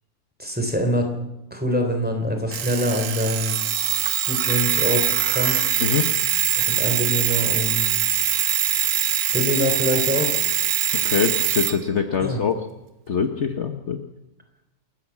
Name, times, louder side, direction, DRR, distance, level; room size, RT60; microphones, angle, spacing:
voice 1, 0.4-1.1 1.5-3.5 4.3-5.7 6.6-8.0 9.3-10.8 12.2-12.4, equal, 5° right, 4 dB, 3.6 m, -25 dB
Alarm, 2.5-11.8, right 9 dB, 75° right, 1.4 m, -23 dB
voice 2, 10.9-12.6 13.1-14.0, left 6 dB, 50° left, 6 dB, 1.3 m, -24 dB
28.5 x 13.5 x 7.3 m, 0.97 s
omnidirectional pair, 1.6 m